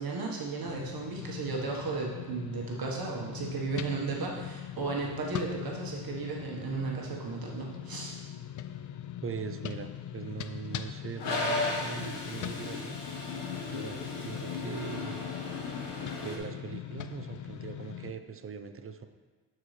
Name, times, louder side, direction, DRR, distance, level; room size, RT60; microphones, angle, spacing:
voice 1, 0.0-8.2, right 4 dB, 55° right, -2 dB, 1.4 m, -35 dB
sound 1, 0.6-18.1, left 10 dB, 50° left, 0.4 m, -41 dB
voice 2, 9.2-13.0 13.7-15.2 16.2-19.1, right 6 dB, 30° right, 8 dB, 0.6 m, -41 dB
Toilet flush, 11.2-16.4, left 2 dB, 85° left, 1.4 m, -35 dB
11.0 x 4.6 x 3.3 m, 1.3 s
cardioid pair, 85°, 42 cm